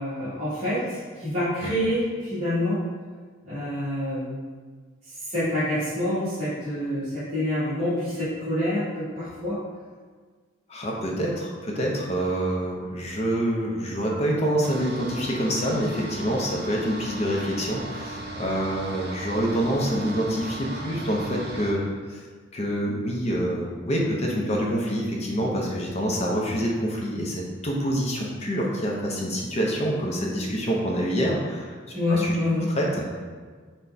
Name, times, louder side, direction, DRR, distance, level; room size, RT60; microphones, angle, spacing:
voice 1, 0.0-2.8 3.5-4.3 5.1-9.6 31.9-32.6, left 1 dB, 30° right, -14 dB, 1.1 m, -27 dB
voice 2, 10.7-22.2 22.5-31.7 32.1-32.4 32.8-33.2, equal, 30° left, -2 dB, 0.5 m, -26 dB
sound 1, 14.6-21.7, right 2 dB, 50° right, 0.4 m, -37 dB
3.9 x 2.2 x 4.4 m, 1.5 s
head